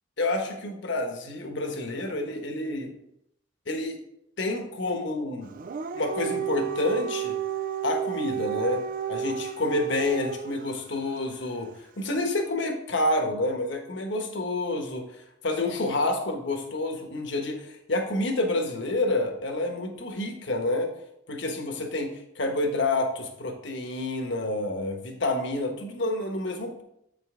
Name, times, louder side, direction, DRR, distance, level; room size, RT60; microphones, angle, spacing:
voice 1, 0.2-2.9 3.7-3.9 4.4-5.6 5.9-7.4 7.8-8.8 9.1-11.7 12.0-15.1 15.4-20.9 21.3-22.1 22.4-26.8, left 2 dB, 60° left, 4 dB, 1.2 m, -28 dB
Dog, 5.5-10.7, right 9 dB, 45° right, 0.4 m, -32 dB
8.5 x 5.2 x 3.7 m, 0.77 s
head